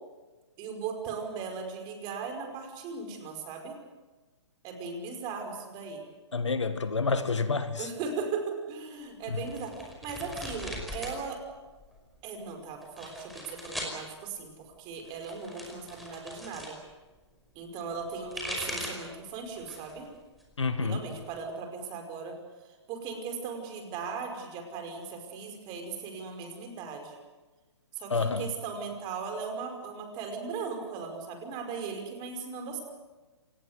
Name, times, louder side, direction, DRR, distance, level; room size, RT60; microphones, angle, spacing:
voice 1, 0.6-3.8 4.6-6.0 7.8-11.4 12.2-16.8 17.6-20.1 20.8-22.4 22.6-27.2 27.9-32.8, right 5 dB, 30° right, 4 dB, 5.3 m, -38 dB
voice 2, 6.3-7.9 9.3-9.4 20.6-21.0 28.1-28.5, left 4 dB, 80° left, 10 dB, 2.1 m, -28 dB
sound 1, 9.4-11.2 11.5-12.1 12.8-14.0 15.0-16.7 18.0-19.1 19.6-20.0 20.4-21.4, equal, ahead, 5.4 m, -40 dB
26.5 x 19.5 x 8.2 m, 1.2 s
figure-of-eight pair, 130°, 15 cm